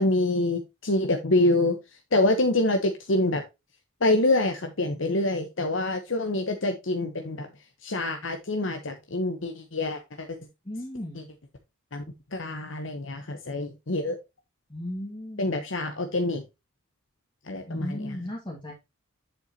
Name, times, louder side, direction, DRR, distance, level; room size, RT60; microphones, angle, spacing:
voice 1, 0.0-1.8 2.1-3.4 4.0-7.5 7.8-10.4 11.9-12.0 12.3-14.2 15.4-16.4 17.5-18.1, left 2 dB, 65° left, 6 dB, 0.9 m, -26 dB
voice 2, 10.6-11.3 14.7-15.5 17.7-18.7, left 1 dB, 25° left, -1 dB, 1.9 m, -36 dB
7.9 x 6.8 x 2.8 m, 0.24 s
head